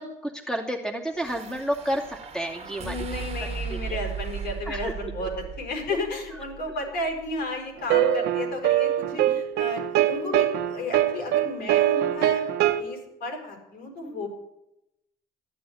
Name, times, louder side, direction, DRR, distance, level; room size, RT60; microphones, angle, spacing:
voice 1, 0.0-3.0 3.7-4.0 4.7-5.3 9.3-9.4 14.0-14.3, right 1 dB, 5° left, 1 dB, 2.5 m, -31 dB
sound 1, 1.2-7.6, right 7 dB, 35° right, 1.5 m, -37 dB
voice 2, 2.8-12.5 12.8-14.3, left 2 dB, 70° left, 3 dB, 5.7 m, -33 dB
sound 2, 7.9-12.8, right 12 dB, 90° right, 1.0 m, -23 dB
14.0 x 11.0 x 9.3 m, 0.86 s
cardioid pair, 110°, 17 cm